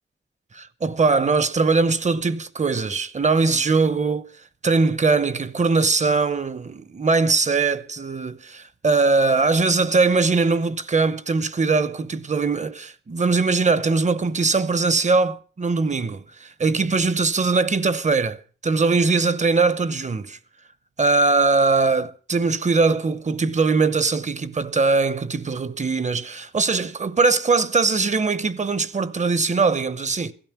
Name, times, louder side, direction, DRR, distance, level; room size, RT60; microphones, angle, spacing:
voice 1, 0.5-4.3 4.6-20.4 21.0-30.3, right 4 dB, 35° right, 0.8 m, -21 dB
16.5 x 13.0 x 5.9 m
wide cardioid pair, 135°, 21 cm